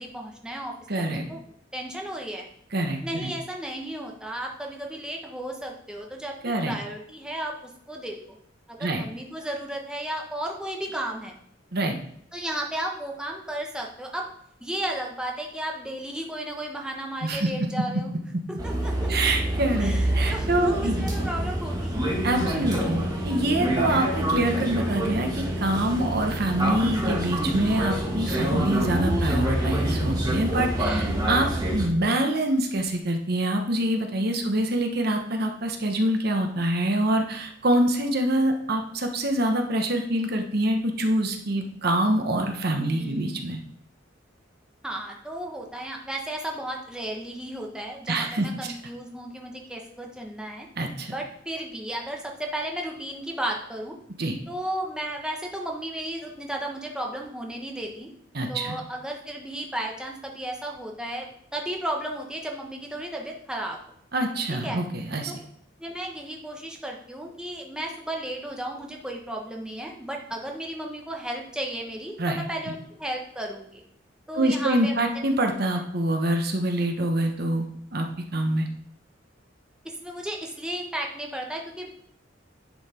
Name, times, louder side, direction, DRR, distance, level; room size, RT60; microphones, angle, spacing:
voice 1, 0.0-0.7 1.0-1.4 1.7-2.5 3.0-6.3 6.6-7.5 7.9-8.2 8.7-11.4 12.3-14.3 14.6-18.1 18.5-19.1 19.8-21.9 22.4-22.6 30.8-31.1 34.3-34.6 42.7-43.3 44.8-50.7 51.1-54.0 54.5-58.1 58.5-63.9 64.6-64.8 65.8-73.8 74.3-74.9 75.4-75.5 79.8-81.9, right 1 dB, 5° right, 0 dB, 1.2 m, -34 dB
voice 2, 0.9-1.3 2.7-3.3 6.4-6.8 8.8-9.0 11.7-12.0 17.2-17.7 19.1-21.1 22.2-43.6 48.1-48.5 50.8-51.1 54.2-54.4 58.3-58.8 64.1-65.3 72.2-72.5 74.3-77.7 77.9-78.1 78.3-78.7, right 1 dB, 55° right, 4 dB, 1.2 m, -25 dB
sound 1, 18.6-31.9, right 1 dB, 20° right, 1.9 m, -26 dB
10.5 x 5.8 x 4.4 m, 0.68 s
head